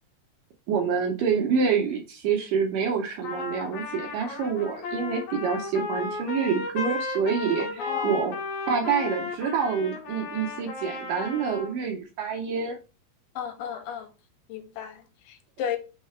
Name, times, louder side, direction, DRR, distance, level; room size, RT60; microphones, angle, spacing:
voice 1, 0.7-8.3 8.7-12.8, right 6 dB, 80° right, 1.9 m, -27 dB
Trumpet, 3.2-11.7, left 4 dB, 65° left, 2.1 m, -34 dB
voice 2, 7.6-8.2 13.4-14.1 14.5-15.8, left 8 dB, 90° left, 2.9 m, -34 dB
5.6 x 3.9 x 4.4 m
omnidirectional pair, 4.5 m